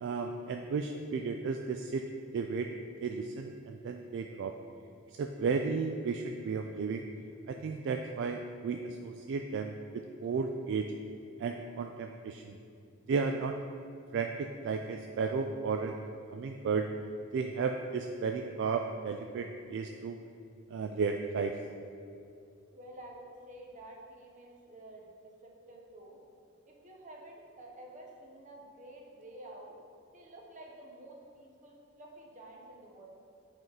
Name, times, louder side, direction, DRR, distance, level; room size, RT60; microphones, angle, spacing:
voice 1, 0.0-2.0 2.3-2.7 3.0-4.5 5.2-7.0 7.5-10.9 11.4-12.6 13.1-13.6 14.1-15.9 16.3-16.9 17.3-20.2 20.7-21.5, right 5 dB, 60° right, 5 dB, 0.3 m, -34 dB
voice 2, 22.7-26.2 26.7-29.7 30.1-33.1, right 1 dB, 40° right, -1 dB, 1.0 m, -50 dB
7.5 x 4.5 x 4.0 m, 2.5 s
head